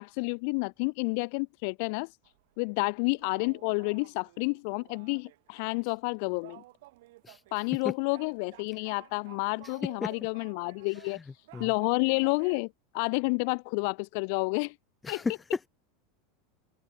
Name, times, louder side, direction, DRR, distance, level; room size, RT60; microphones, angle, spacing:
voice 1, 0.0-2.1 2.6-6.6 7.5-11.2 11.6-12.7 12.9-14.7 15.1-15.2, left 34 dB, 60° left, 0.4 m, -30 dB
sound 1, 2.2-2.6 3.1-5.8 6.1-6.2 6.3-7.7 8.1-12.6, right 19 dB, 70° right, 6.4 m, -54 dB
voice 2, 11.1-11.7 15.0-15.7, left 4 dB, 20° left, 2.4 m, -34 dB
hypercardioid pair, 95°, 0 cm